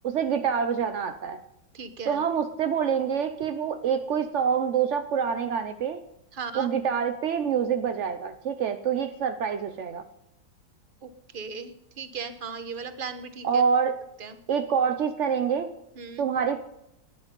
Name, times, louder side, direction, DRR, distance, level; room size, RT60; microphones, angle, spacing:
voice 1, 0.0-1.4 2.1-6.0 6.5-10.0 13.4-13.9 14.5-15.7 16.2-16.6, right 7 dB, 70° right, 9 dB, 0.7 m, -26 dB
voice 2, 1.7-2.2 6.3-6.7 11.0-13.6 14.2-14.4 16.0-16.2, right 5 dB, 35° right, 10 dB, 1.0 m, -37 dB
14.0 x 9.8 x 5.3 m, 0.82 s
omnidirectional pair, 2.1 m